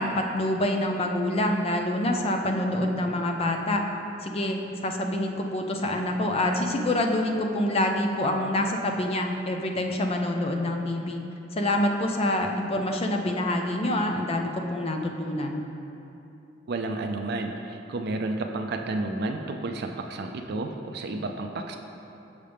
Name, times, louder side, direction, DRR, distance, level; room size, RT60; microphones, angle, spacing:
voice 1, 0.0-3.8 4.2-11.2 11.5-15.6, left 1 dB, 30° left, 3 dB, 0.5 m, -26 dB
voice 2, 16.7-21.8, right 2 dB, 60° right, 4 dB, 0.4 m, -31 dB
7.0 x 6.4 x 3.4 m, 2.9 s
head